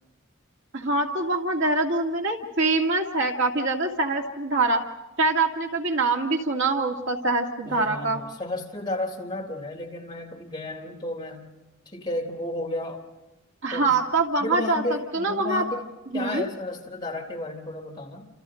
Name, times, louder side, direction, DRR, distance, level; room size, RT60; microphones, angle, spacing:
voice 1, 0.7-4.8 5.2-8.2 13.6-14.8 15.1-15.6 16.1-16.4, right 3 dB, 65° right, 1 dB, 2.4 m, -24 dB
voice 2, 7.6-11.5 11.9-13.0 13.7-13.9 14.4-15.9 16.1-18.3, left 1 dB, 25° left, 0 dB, 3.8 m, -33 dB
29.5 x 28.0 x 3.9 m, 1.1 s
head